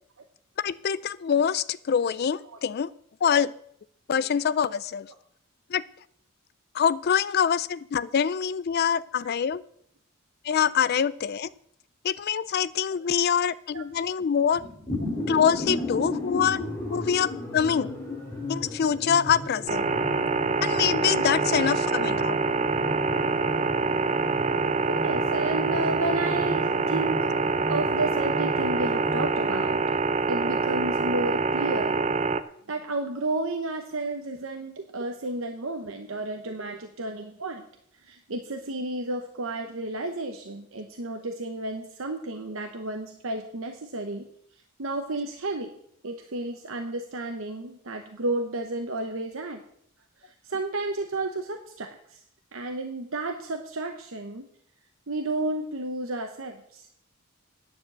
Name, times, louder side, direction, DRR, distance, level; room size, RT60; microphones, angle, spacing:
voice 1, 0.6-2.9 3.2-3.5 4.1-5.1 5.7-5.8 6.7-9.6 10.4-11.5 12.0-14.6 15.3-16.6 16.9-17.9 18.5-19.9 20.6-22.4, left 7 dB, 45° left, 17 dB, 0.3 m, -25 dB
sound 1, 14.5-29.3, left 1 dB, 15° left, 2.7 m, -35 dB
sound 2, 19.7-32.4, right 4 dB, 30° right, 0.5 m, -25 dB
voice 2, 24.9-27.3 27.7-29.8 30.3-32.0 32.7-37.6 38.0-44.3 44.8-45.7 46.0-49.6 50.2-52.2 52.5-54.5 55.1-56.9, right 2 dB, 65° right, 4 dB, 1.0 m, -32 dB
10.0 x 7.0 x 7.9 m, 0.68 s
head